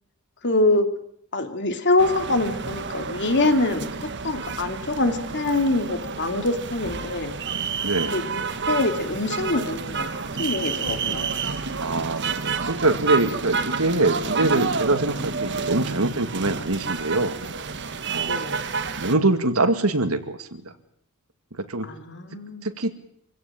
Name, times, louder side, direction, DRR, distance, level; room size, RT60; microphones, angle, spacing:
voice 1, 0.4-0.9 1.3-7.3 8.1-8.4 8.7-10.1 10.4-11.3 18.2-18.6 21.8-22.6, left 2 dB, 55° left, 7 dB, 2.9 m, -24 dB
sound 1, 2.0-19.1, right 5 dB, 55° right, 1.5 m, -29 dB
voice 2, 7.8-8.2 11.8-17.3 18.1-18.4 19.0-20.7 21.6-21.9 22.6-22.9, right 2 dB, 85° right, 9 dB, 2.2 m, -24 dB
25.5 x 16.5 x 9.0 m, 0.71 s
head